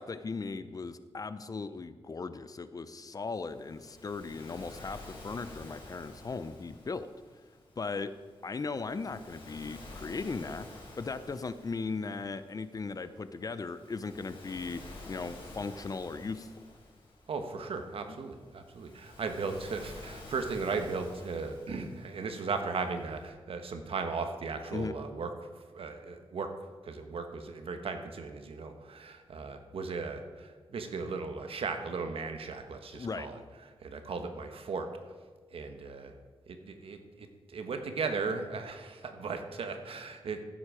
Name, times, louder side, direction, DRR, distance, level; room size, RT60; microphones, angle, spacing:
voice 1, 0.0-7.1 7.8-8.1 8.4-16.5 18.1-18.3 24.7-24.9 32.9-33.3, left 4 dB, 40° left, 12 dB, 0.6 m, -38 dB
Waves surf, 3.3-23.3, left 2 dB, 65° left, 4.2 m, -51 dB
voice 2, 17.3-26.6 26.8-34.9 35.5-36.1 36.5-40.4, right 4 dB, 75° right, 6 dB, 1.3 m, -37 dB
14.5 x 7.9 x 5.0 m, 1.5 s
wide cardioid pair, 115°, 10 cm